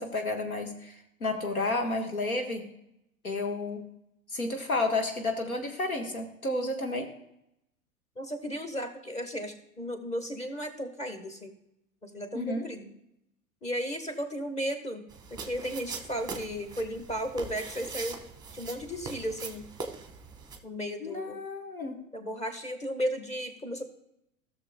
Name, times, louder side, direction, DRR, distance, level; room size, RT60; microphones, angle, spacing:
voice 1, 0.0-2.7 3.2-3.8 4.3-7.1 12.3-12.7 21.0-22.0, left 2 dB, 85° left, 3 dB, 1.5 m, -31 dB
voice 2, 8.1-11.5 12.0-12.9 13.6-15.0 15.3-18.2 18.5-19.7 20.6-21.4 22.1-23.8, equal, 15° left, 5 dB, 1.4 m, -34 dB
sound 1, 15.1-20.6, right 4 dB, 10° right, 1.1 m, -41 dB
16.0 x 6.6 x 2.2 m, 0.82 s
figure-of-eight pair, 90°, 42 cm